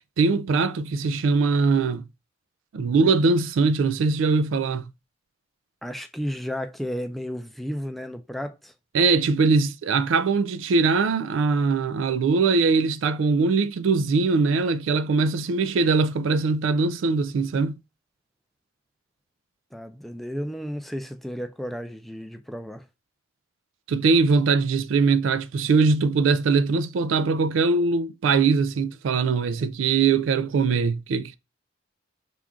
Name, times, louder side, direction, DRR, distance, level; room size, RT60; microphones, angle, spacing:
voice 1, 0.2-2.0 2.7-4.9 8.9-17.8 23.9-31.4, right 4 dB, 80° right, 0.4 m, -21 dB
voice 2, 5.8-8.7 19.7-22.9, equal, ahead, 0.4 m, -33 dB
5.8 x 2.4 x 3.6 m
head